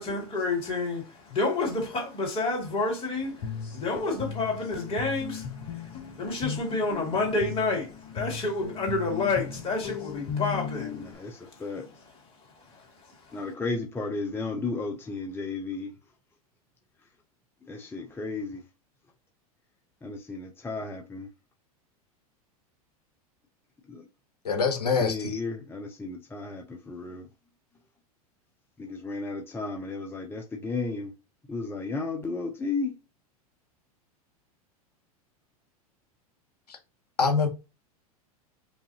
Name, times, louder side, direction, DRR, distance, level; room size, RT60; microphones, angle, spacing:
voice 1, 0.0-11.6 12.5-13.4, left 3 dB, 30° left, 2.4 m, -30 dB
Guitar, 3.2-11.1, left 6 dB, 55° left, 1.3 m, -37 dB
voice 2, 10.9-11.9 13.3-15.9 17.7-18.6 20.0-21.3 23.9-24.1 25.0-27.3 28.8-31.1 31.5-32.9, left 3 dB, 10° left, 0.7 m, -34 dB
voice 3, 24.4-25.4 36.7-36.8 37.2-37.5, left 5 dB, 90° left, 0.8 m, -25 dB
5.3 x 2.5 x 2.8 m
hypercardioid pair, 95°, 19 cm